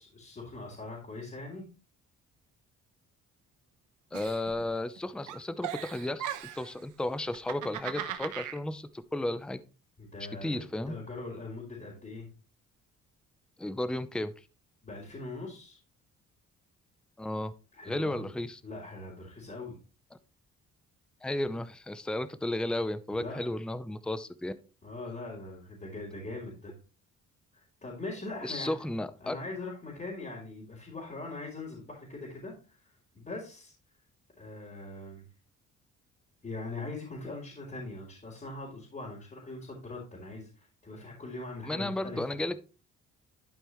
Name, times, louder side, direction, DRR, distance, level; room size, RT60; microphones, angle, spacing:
voice 1, 0.0-1.7 10.0-12.3 14.8-15.8 17.7-18.3 18.6-19.8 23.1-23.5 24.8-26.7 27.5-28.7 29.2-33.7 34.4-35.3 36.4-42.2, left 2 dB, 25° left, -5 dB, 3.5 m, -41 dB
voice 2, 4.1-6.2 6.6-9.6 10.4-10.9 13.6-14.3 17.2-17.5 17.8-18.6 21.2-24.5 28.4-29.4 41.6-42.6, left 1 dB, 5° left, 13 dB, 0.6 m, -33 dB
Giggle, 4.1-5.0 5.3-6.7 7.3-8.6, right 11 dB, 90° right, 1.0 m, -38 dB
11.5 x 5.3 x 3.1 m, 0.34 s
cardioid pair, 90°, 30 cm